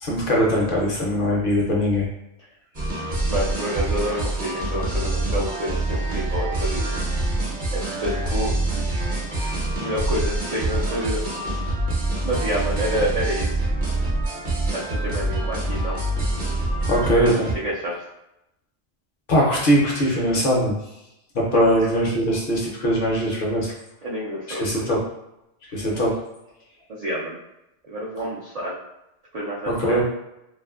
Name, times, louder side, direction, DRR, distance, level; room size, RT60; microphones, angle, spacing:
voice 1, 0.0-2.1 16.9-17.5 19.3-20.8 21.3-23.7 24.5-25.0 25.7-26.1 29.8-30.0, equal, 55° left, -3 dB, 0.7 m, -21 dB
sound 1, 2.7-17.5, right 1 dB, 50° right, 0.8 m, -25 dB
voice 2, 3.3-7.0 7.7-8.5 9.8-11.2 12.2-13.7 14.7-16.0 17.5-18.0 21.5-21.9 23.7-23.8 24.0-25.0 26.9-27.3 27.9-28.7 29.3-30.0, right 1 dB, 70° right, -5 dB, 0.3 m, -28 dB
2.5 x 2.4 x 2.3 m, 0.88 s
omnidirectional pair, 1.2 m